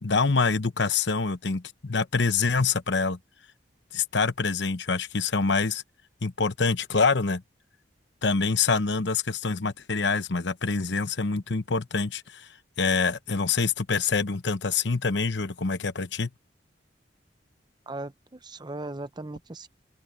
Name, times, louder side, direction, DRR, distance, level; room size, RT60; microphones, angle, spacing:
voice 1, 0.0-3.2 3.9-5.8 6.2-7.4 8.2-12.5 12.8-16.3, left 4 dB, 70° left, 1.0 m, -26 dB
voice 2, 17.9-19.7, right 2 dB, 25° right, 0.7 m, -38 dB
open air
head